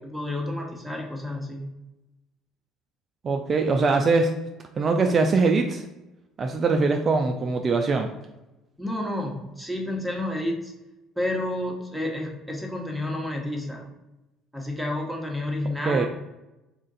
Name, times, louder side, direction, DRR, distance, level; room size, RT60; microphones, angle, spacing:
voice 1, 0.0-1.6 8.8-10.7 11.2-13.8 14.5-16.1, left 1 dB, ahead, 0 dB, 1.1 m, -30 dB
voice 2, 3.2-4.3 4.8-5.8 6.4-8.1 15.9-16.1, right 4 dB, 40° right, 4 dB, 0.4 m, -22 dB
3.7 x 2.5 x 4.0 m, 0.99 s
hypercardioid pair, 70°, 0 cm